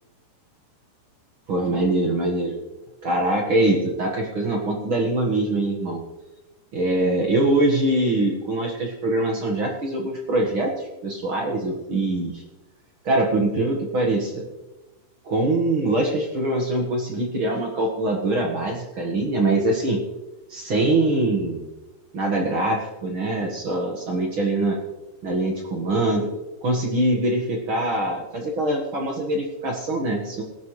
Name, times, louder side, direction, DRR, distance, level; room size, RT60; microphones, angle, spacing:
voice 1, 1.5-2.6 3.0-6.0 6.7-12.4 13.0-14.4 15.2-20.0 20.5-21.7 22.1-24.8 25.2-26.3 26.6-30.4, right 2 dB, 55° right, 0 dB, 1.5 m, -23 dB
20.0 x 11.5 x 3.2 m, 1.1 s
omnidirectional pair, 4.5 m